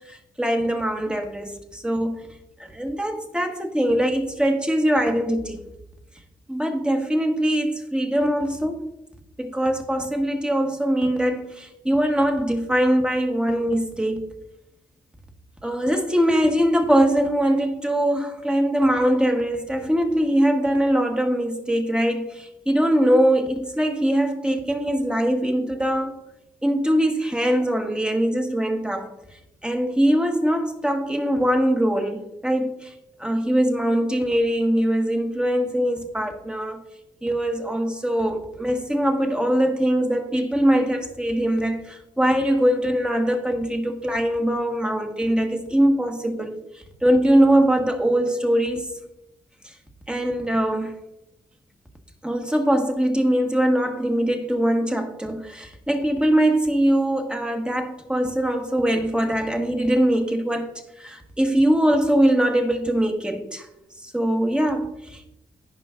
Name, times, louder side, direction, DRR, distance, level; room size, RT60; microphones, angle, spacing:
voice 1, 0.1-2.2 2.6-5.6 6.5-8.9 9.4-14.3 15.6-26.2 26.6-29.1 29.6-32.9 33.2-36.8 37.2-46.5 47.0-48.9 49.6-49.7 50.1-50.9 52.2-63.7 64.0-65.3, right 1 dB, 5° right, 4 dB, 1.4 m, -22 dB
14.5 x 5.2 x 2.5 m, 0.89 s
cardioid pair, 60°, 14 cm